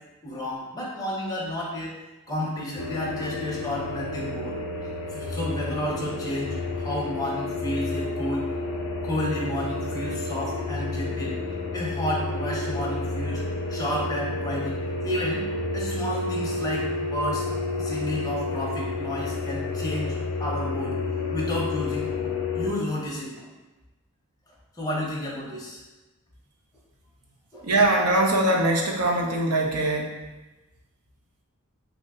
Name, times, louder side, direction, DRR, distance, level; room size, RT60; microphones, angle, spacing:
voice 1, 0.2-1.9 2.3-4.6 5.1-8.5 9.0-11.4 11.7-13.4 13.7-15.4 15.7-17.5 17.8-22.1 22.5-23.5 24.8-25.8 27.5-27.7, left 1 dB, 15° left, -4 dB, 0.6 m, -31 dB
sound 1, 2.8-22.7, left 2 dB, 80° left, 0.5 m, -30 dB
voice 2, 27.6-30.2, right 1 dB, 75° right, 1 dB, 0.5 m, -22 dB
2.9 x 2.1 x 3.5 m, 1.1 s
head